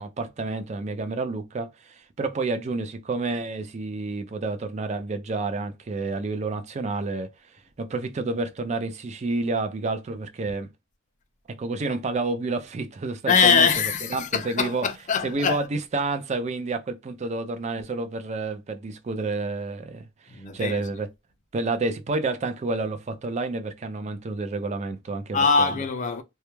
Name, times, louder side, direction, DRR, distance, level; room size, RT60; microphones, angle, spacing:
voice 1, 0.0-7.3 7.8-10.7 11.6-13.7 14.1-14.9 15.2-21.1 21.5-25.7, right 3 dB, 35° right, 0.4 m, -29 dB
voice 2, 13.3-15.6 20.3-20.8 25.3-26.2, left 5 dB, 35° left, 0.4 m, -22 dB
2.3 x 2.1 x 2.9 m
head